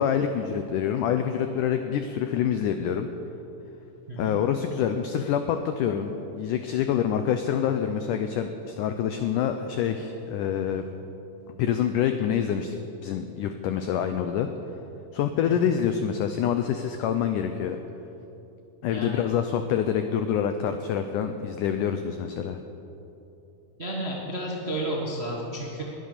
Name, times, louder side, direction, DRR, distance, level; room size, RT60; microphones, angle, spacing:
voice 1, 0.0-3.1 4.2-10.9 11.6-12.8 13.0-14.5 15.1-17.8 18.8-22.6, left 8 dB, 85° left, 8 dB, 1.8 m, -26 dB
voice 2, 4.1-4.4 15.4-15.7 18.9-19.2 23.8-25.8, right 1 dB, 55° right, -3 dB, 0.6 m, -32 dB
21.0 x 9.3 x 6.7 m, 3.0 s
omnidirectional pair, 4.5 m